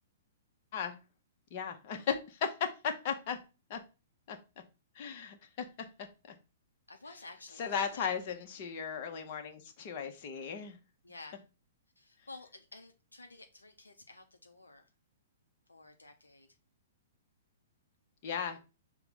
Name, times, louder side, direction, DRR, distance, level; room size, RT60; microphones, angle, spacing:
voice 1, 1.5-3.4 3.7-3.8 4.3-4.4 5.0-5.7 7.6-10.8 18.2-18.6, left 7 dB, 40° left, 5 dB, 0.8 m, -36 dB
voice 2, 6.9-8.1 11.0-11.4 12.0-14.9 15.7-16.5 18.5-18.6, left 2 dB, 80° left, 5 dB, 0.6 m, -52 dB
5.6 x 2.2 x 4.1 m, 0.30 s
figure-of-eight pair, 115°, 0 cm